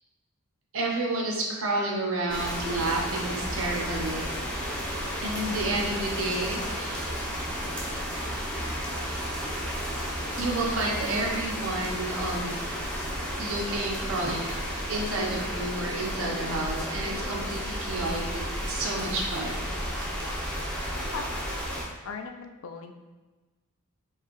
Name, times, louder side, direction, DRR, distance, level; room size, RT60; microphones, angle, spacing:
voice 1, 0.7-4.2 5.2-7.1 10.4-12.6 13.4-14.5 14.9-18.4 18.7-19.6, right 2 dB, 60° right, -2 dB, 0.8 m, -30 dB
sound 1, 2.3-21.9, equal, 5° left, 0.5 m, -32 dB
voice 2, 22.0-22.9, left 4 dB, 60° left, 6 dB, 0.4 m, -37 dB
4.6 x 2.8 x 2.9 m, 1.2 s
head